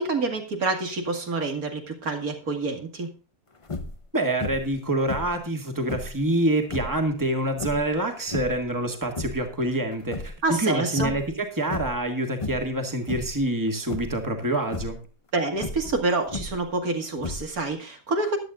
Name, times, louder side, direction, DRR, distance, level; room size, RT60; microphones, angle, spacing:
voice 1, 0.0-3.1 10.4-11.1 15.3-18.4, right 3 dB, 65° right, 4 dB, 2.6 m, -27 dB
sound 1, 3.6-4.1 4.4-4.8 5.1-6.2 6.6-7.0 7.5-8.7 9.0-9.5 9.9-10.7 11.0-11.3 11.6-12.1 12.4-12.8 13.1-13.4 13.9-14.2 14.6-15.0 15.5-16.7 17.2-17.7, left 2 dB, 25° left, 0.8 m, -34 dB
voice 2, 4.1-15.0, right 1 dB, 10° right, 4 dB, 1.9 m, -26 dB
15.0 x 11.0 x 2.5 m, 0.36 s
omnidirectional pair, 1.7 m